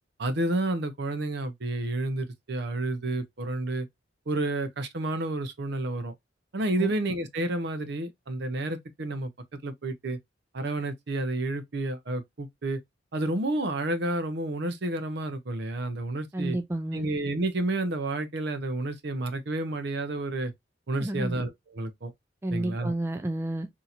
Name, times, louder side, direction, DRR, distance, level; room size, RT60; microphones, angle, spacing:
voice 1, 0.2-3.9 4.3-6.1 6.5-9.3 9.6-10.2 10.5-12.8 13.1-16.6 16.9-20.5 20.9-22.1 22.5-22.9, right 2 dB, 60° right, 0.7 m, -30 dB
voice 2, 16.3-17.1 21.0-21.4 22.4-23.7, right 1 dB, 15° right, 0.3 m, -31 dB
4.2 x 2.8 x 2.4 m
head